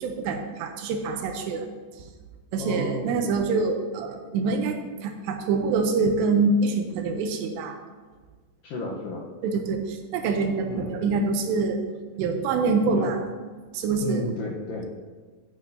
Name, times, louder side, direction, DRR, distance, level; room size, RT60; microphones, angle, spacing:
voice 1, 0.0-1.7 2.5-7.8 9.4-11.8 12.2-13.2 13.7-14.2, right 4 dB, 80° right, 5 dB, 2.8 m, -25 dB
voice 2, 2.6-3.1 8.6-9.2 10.6-11.0 12.9-13.1 14.0-14.9, left 2 dB, 70° left, -3 dB, 2.2 m, -32 dB
13.0 x 9.3 x 2.8 m, 1.4 s
omnidirectional pair, 5.1 m